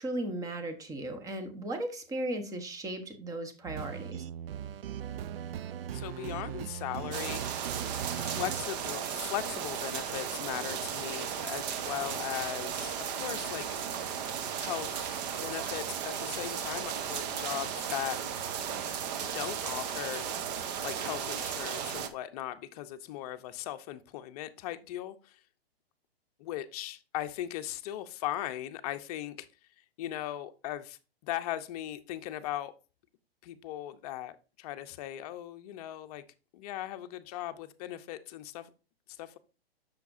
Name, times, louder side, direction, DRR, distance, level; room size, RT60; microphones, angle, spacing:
voice 1, 0.0-4.3, right 1 dB, 10° right, 1.0 m, -36 dB
sound 1, 3.6-8.6, right 9 dB, 65° right, 0.5 m, -39 dB
voice 2, 5.9-13.8 14.6-18.2 19.2-20.5 20.8-25.4 26.4-29.5 30.0-32.7 33.4-36.2 36.5-38.7 39.1-39.4, left 13 dB, 40° left, 0.7 m, -38 dB
sound 2, 7.1-22.1, right 8 dB, 40° right, 1.0 m, -35 dB
8.1 x 6.5 x 2.6 m
hypercardioid pair, 135°, 31 cm